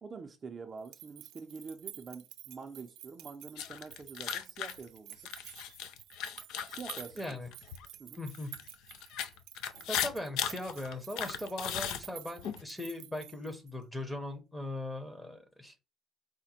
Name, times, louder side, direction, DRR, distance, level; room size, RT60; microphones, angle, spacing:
voice 1, 0.0-5.3 6.7-7.4 8.0-8.2, right 5 dB, 30° right, 0.5 m, -46 dB
sound 1, 0.8-13.8, right 14 dB, 90° right, 0.4 m, -51 dB
sound 2, 3.6-7.9 8.3-12.6, left 9 dB, 80° left, 0.5 m, -37 dB
voice 2, 7.2-7.5 8.2-8.5 9.9-15.7, left 1 dB, 5° left, 0.7 m, -39 dB
5.0 x 2.1 x 4.2 m
cardioid pair, 140°, 0 cm